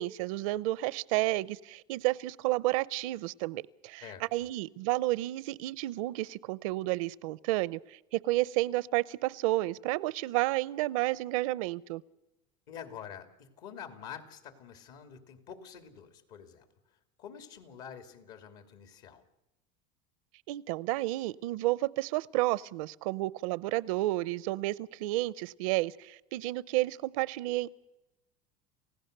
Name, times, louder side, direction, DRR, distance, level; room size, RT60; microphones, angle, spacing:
voice 1, 0.0-4.0 4.3-12.0 20.5-27.7, right 18 dB, 80° right, 21 dB, 0.7 m, -31 dB
voice 2, 4.0-4.5 12.7-16.7 17.2-19.2, left 8 dB, 70° left, 7 dB, 2.8 m, -47 dB
29.5 x 16.0 x 6.7 m, 0.97 s
supercardioid pair, 115°, 17 cm